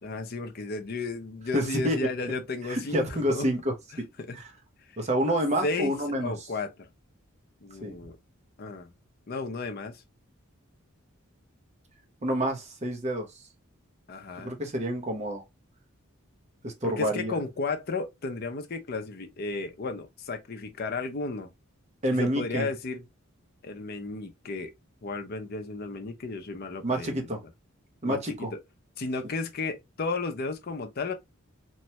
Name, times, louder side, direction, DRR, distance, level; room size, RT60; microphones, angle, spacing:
voice 1, 0.0-3.5 3.9-4.4 5.6-6.7 7.6-8.2 8.6-8.9 9.3-10.0 14.1-14.6 16.8-21.5 22.1-23.0 23.6-24.7 25.0-27.2 28.0-28.2 28.5-28.6 29.0-31.1, left 3 dB, 45° left, 0.5 m, -34 dB
voice 2, 1.5-2.1 2.7-4.0 5.0-6.3 7.8-7.9 12.2-13.3 14.4-15.4 16.6-17.4 22.0-22.7 26.8-27.4 28.0-28.5, equal, 35° right, 0.7 m, -28 dB
3.0 x 2.2 x 2.8 m
head